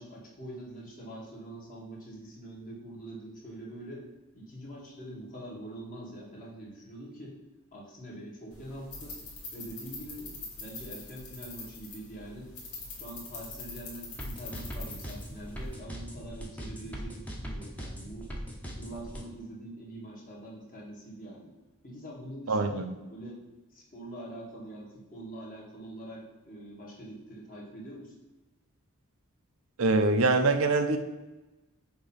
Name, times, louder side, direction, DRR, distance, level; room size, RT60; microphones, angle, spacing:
voice 1, 0.0-4.0 4.3-7.3 7.7-9.2 9.5-12.5 12.9-18.3 18.7-21.5 21.8-23.4 23.7-28.1, right 1 dB, 40° left, -4 dB, 2.0 m, -44 dB
sound 1, 8.5-15.8, left 3 dB, 80° left, 2.0 m, -44 dB
sound 2, 14.2-19.2, equal, 5° left, 0.9 m, -40 dB
voice 2, 22.5-22.9 29.8-31.0, right 3 dB, 70° right, 6 dB, 0.6 m, -24 dB
6.8 x 3.0 x 5.6 m, 1.1 s
head